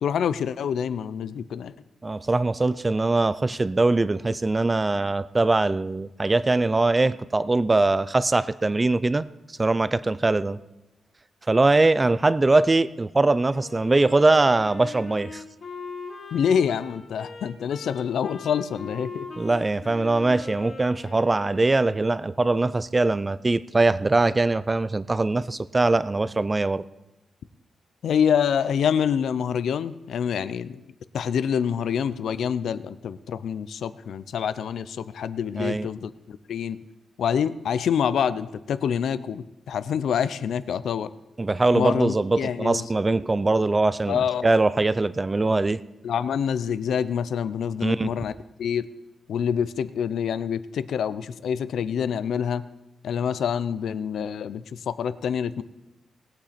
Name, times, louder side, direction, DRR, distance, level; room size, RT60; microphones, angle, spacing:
voice 1, 0.0-1.7 16.3-19.3 28.0-30.8 31.1-36.8 37.2-41.1 41.7-42.9 44.1-44.5 46.0-48.3 48.6-48.9 49.3-52.6 53.0-55.6, left 8 dB, 75° left, 15 dB, 0.5 m, -26 dB
voice 2, 2.0-9.3 9.6-10.6 11.5-15.4 19.4-26.8 35.6-35.9 41.4-45.8 47.8-48.1, right 2 dB, 20° right, 16 dB, 0.4 m, -22 dB
Wind instrument woodwind instrument, 13.5-22.0, left 4 dB, 50° left, 2.3 m, -40 dB
19.5 x 8.6 x 4.3 m, 0.97 s
wide cardioid pair, 170°, 0 cm